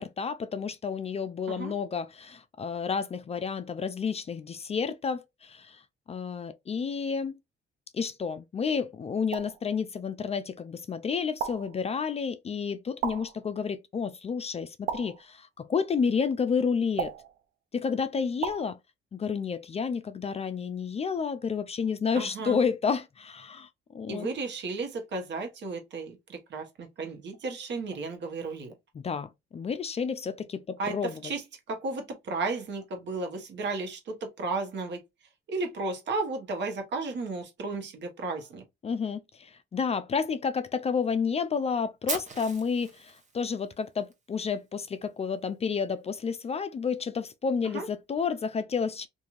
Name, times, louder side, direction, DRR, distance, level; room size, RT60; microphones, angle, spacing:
voice 1, 0.0-5.8 6.1-7.4 7.9-17.1 17.7-18.8 19.1-24.3 28.9-31.2 38.8-49.1, left 6 dB, 30° left, 0.3 m, -30 dB
sound 1, 9.3-9.6 11.4-11.8 13.0-13.4 14.9-15.3 17.0-17.4 18.4-18.7, right 8 dB, 85° right, 0.5 m, -34 dB
voice 2, 22.1-22.6 24.1-28.7 30.8-35.0 35.5-38.6 47.7-47.9, right 3 dB, 65° right, 1.1 m, -34 dB
Fire, 42.1-44.1, right 4 dB, 35° right, 1.1 m, -38 dB
3.0 x 2.5 x 2.4 m
cardioid pair, 90°, 20 cm